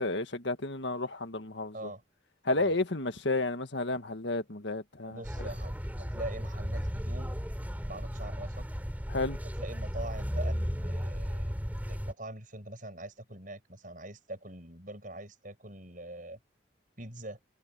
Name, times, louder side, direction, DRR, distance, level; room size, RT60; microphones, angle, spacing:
voice 1, 0.0-1.7 2.4-5.2 9.1-9.4, left 2 dB, 70° left, 1.7 m, -31 dB
voice 2, 5.1-7.4 7.9-8.7 9.6-11.5 11.9-16.4 17.0-17.4, right 1 dB, 45° right, 7.9 m, -43 dB
sound 1, 5.2-12.1, equal, 10° right, 7.9 m, -35 dB
head